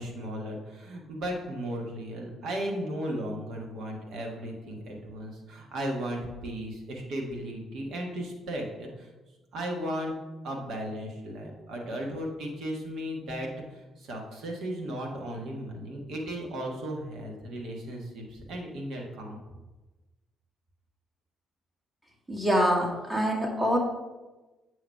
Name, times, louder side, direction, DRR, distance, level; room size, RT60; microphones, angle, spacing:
voice 1, 0.0-9.1 9.5-10.1 10.4-19.4, equal, 55° right, 0 dB, 1.5 m, -35 dB
voice 2, 22.3-23.8, equal, 25° right, -1 dB, 2.0 m, -25 dB
7.9 x 3.1 x 5.6 m, 1.1 s
figure-of-eight pair, 45°, 0 cm